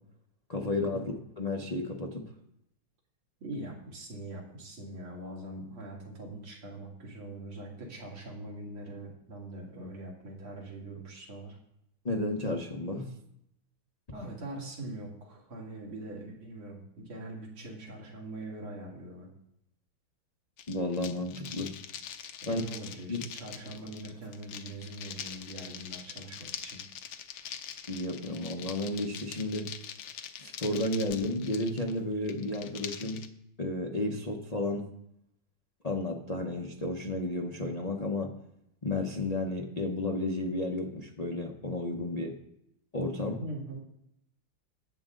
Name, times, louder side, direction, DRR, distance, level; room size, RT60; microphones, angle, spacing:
voice 1, 0.5-2.3 12.0-13.1 20.7-21.7 22.4-22.6 23.1-23.2 27.9-29.7 30.4-33.2 33.6-34.8 35.8-38.3 38.8-42.3 42.9-43.4, left 2 dB, 50° left, 1 dB, 0.4 m, -32 dB
voice 2, 3.4-11.6 14.1-19.3 22.4-26.8 43.4-43.8, right 1 dB, 80° right, -3 dB, 3.3 m, -42 dB
sound 1, 20.6-33.3, left 9 dB, 75° left, 1.5 m, -44 dB
15.5 x 7.6 x 3.8 m, 0.78 s
omnidirectional pair, 2.3 m